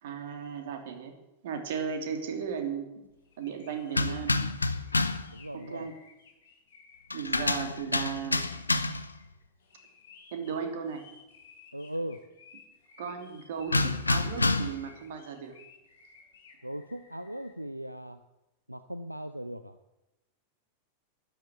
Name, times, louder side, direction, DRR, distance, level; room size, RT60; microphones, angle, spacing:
voice 1, 0.0-1.1 1.4-3.0 3.4-4.3 5.5-5.9 7.1-8.4 10.3-11.0 13.0-15.5, right 7 dB, 55° right, 5 dB, 2.9 m, -36 dB
sound 1, 3.2-17.5, left 5 dB, 65° left, 4.3 m, -57 dB
sound 2, 3.9-5.3 7.1-9.2 13.7-14.9, left 2 dB, 80° left, 0.8 m, -28 dB
voice 2, 5.3-5.9 11.7-12.2 16.6-18.2 18.7-19.8, equal, 90° right, 10 dB, 0.6 m, -38 dB
13.0 x 12.0 x 7.3 m, 0.96 s
figure-of-eight pair, 90°, 0 cm